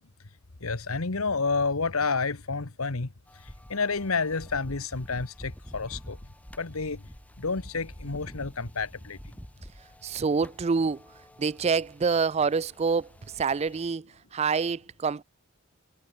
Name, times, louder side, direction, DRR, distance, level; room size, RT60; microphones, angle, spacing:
voice 1, 0.6-3.1 3.7-6.2 6.6-7.0 7.4-9.2, left 4 dB, 80° left, 1.4 m, -29 dB
sound 1, 3.3-13.9, equal, 5° left, 1.3 m, -47 dB
voice 2, 10.0-11.0 11.4-15.2, right 5 dB, 30° right, 0.4 m, -27 dB
head